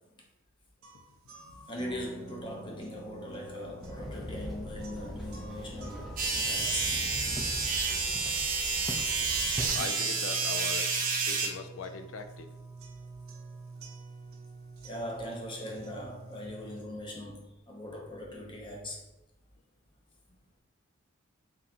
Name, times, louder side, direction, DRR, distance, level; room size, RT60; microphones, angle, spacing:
sound 1, 0.8-16.8, right 2 dB, 90° right, 0.7 m, -48 dB
voice 1, 1.3-6.9 14.8-19.1 20.3-20.4, left 1 dB, 25° left, 0.8 m, -40 dB
Walk footsteps / Chatter / Hiss, 3.8-9.8, equal, ahead, 0.4 m, -41 dB
sound 2, 6.2-11.5, right 4 dB, 45° right, 0.7 m, -30 dB
voice 2, 9.6-12.5, left 4 dB, 70° left, 0.4 m, -41 dB
3.8 x 3.7 x 2.8 m
head